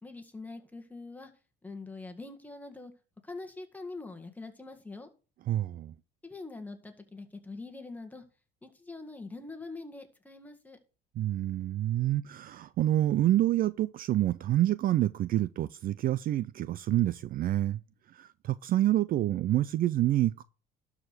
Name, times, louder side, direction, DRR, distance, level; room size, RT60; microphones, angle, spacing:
voice 1, 0.0-1.3 1.6-2.9 3.2-5.1 6.2-8.3 8.6-10.8, left 3 dB, 10° left, 1.8 m, -44 dB
voice 2, 5.5-5.9 11.2-17.8 18.1-20.4, right 13 dB, 45° right, 0.4 m, -27 dB
12.0 x 4.9 x 6.1 m
cardioid pair, 120°, 20 cm